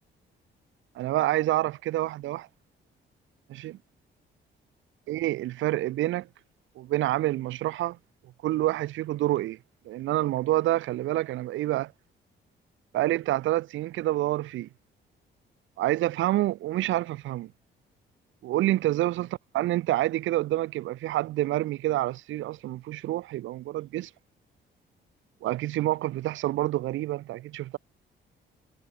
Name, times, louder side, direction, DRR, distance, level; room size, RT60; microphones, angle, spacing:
voice 1, 1.0-2.5 3.5-3.8 5.1-6.3 6.8-8.0 8.4-9.6 9.9-11.9 12.9-14.7 15.8-17.5 18.4-19.3 19.5-24.1 25.4-27.8, right 15 dB, 75° right, 0.6 m, -27 dB
cardioid pair, 90°, 20 cm